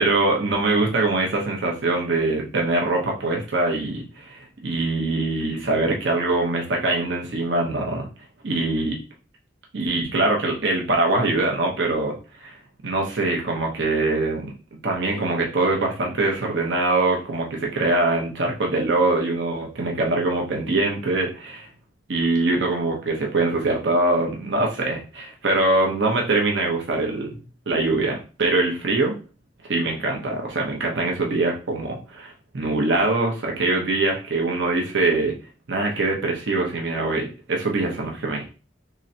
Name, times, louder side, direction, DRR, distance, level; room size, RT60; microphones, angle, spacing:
voice 1, 0.0-8.1 8.4-9.0 9.7-12.6 12.8-14.5 14.8-21.7 22.1-27.4 27.7-29.1 29.7-35.3 35.7-38.5, right 2 dB, 80° right, 0 dB, 0.9 m, -23 dB
3.8 x 3.1 x 2.8 m, 0.33 s
head